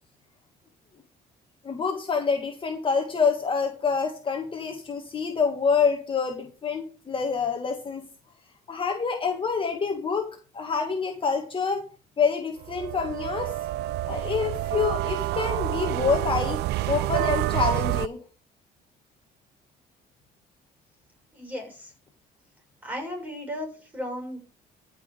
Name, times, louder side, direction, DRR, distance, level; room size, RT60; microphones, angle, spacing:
voice 1, 1.6-8.0 8.7-10.3 10.5-11.8 12.2-13.5 14.1-16.6 16.9-18.2, left 5 dB, 30° left, 3 dB, 1.9 m, -27 dB
sound 1, 12.6-18.1, right 16 dB, 80° right, 0.4 m, -28 dB
voice 2, 21.3-21.9 22.8-24.4, equal, 10° right, 3 dB, 6.6 m, -35 dB
14.0 x 5.9 x 5.1 m, 0.38 s
cardioid pair, 110°, 17 cm